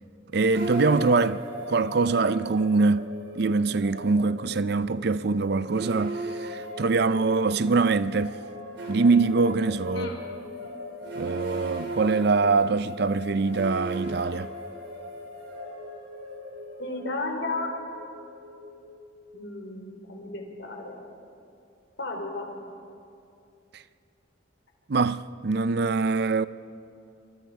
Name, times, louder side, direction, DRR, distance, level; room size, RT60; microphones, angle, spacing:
voice 1, 0.3-1.4 1.7-8.4 8.9-10.1 11.2-14.5 24.9-26.5, right 4 dB, 55° right, 0.5 m, -24 dB
sound 1, 0.5-19.6, equal, 75° right, 4.1 m, -38 dB
voice 2, 16.8-17.7 19.3-21.0 22.0-22.5, left 2 dB, 70° left, 3.9 m, -34 dB
27.5 x 24.5 x 4.8 m
head